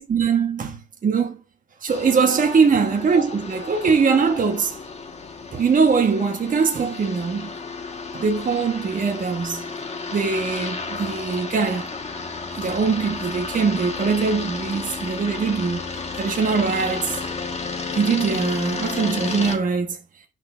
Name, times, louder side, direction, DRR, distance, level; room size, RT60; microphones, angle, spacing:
voice 1, 0.0-1.4 1.8-4.7 5.5-7.5 8.1-9.6 10.1-11.9 12.6-17.2 17.9-20.0, right 5 dB, 40° right, 1.2 m, -22 dB
sound 1, 1.9-19.6, left 4 dB, 30° left, 1.4 m, -32 dB
9.4 x 6.1 x 2.5 m
cardioid pair, 90°, 20 cm